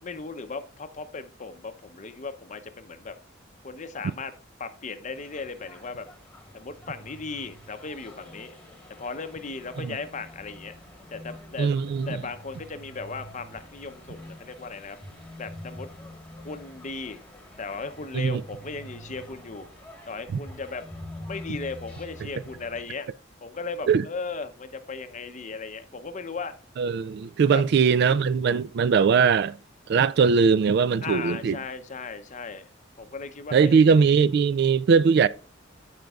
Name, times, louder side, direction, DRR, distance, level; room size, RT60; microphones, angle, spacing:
voice 1, 0.0-3.1 3.6-4.3 4.6-6.1 6.5-8.6 9.0-10.8 11.1-15.0 15.4-15.9 16.4-17.2 17.6-19.7 20.1-20.8 21.3-23.1 23.4-26.5 27.5-27.6 31.0-32.7 33.0-33.8, left 4 dB, 35° left, 0.6 m, -37 dB
sound 1, 5.1-22.8, left 1 dB, 5° left, 1.4 m, -46 dB
voice 2, 11.6-12.2 18.1-18.4 20.3-20.4 23.9-24.0 26.8-29.6 29.9-31.6 33.5-35.3, right 5 dB, 55° right, 0.3 m, -20 dB
15.5 x 5.2 x 2.3 m
head